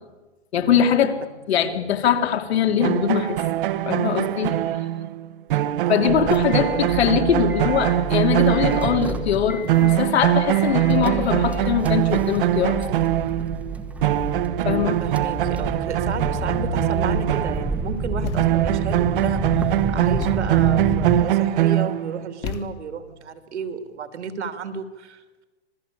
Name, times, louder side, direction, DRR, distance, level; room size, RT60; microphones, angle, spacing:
voice 1, 0.5-1.2 1.5-3.4 3.8-4.6 5.9-12.9 14.6-15.0, left 8 dB, 65° left, 6 dB, 3.3 m, -22 dB
sound 1, 2.8-9.4 9.7-17.9 18.4-22.3, right 13 dB, 50° right, 1.2 m, -22 dB
voice 2, 5.8-6.6 15.0-19.7 19.9-25.4, right 6 dB, 80° right, 9 dB, 3.0 m, -33 dB
sound 2, 6.1-21.3, right 1 dB, 5° right, 1.0 m, -30 dB
Thump thud, 18.2-18.8 20.2-20.6 22.4-23.1, left 8 dB, 35° left, 1.9 m, -34 dB
26.5 x 18.5 x 8.6 m, 1.2 s
hypercardioid pair, 150°, 34 cm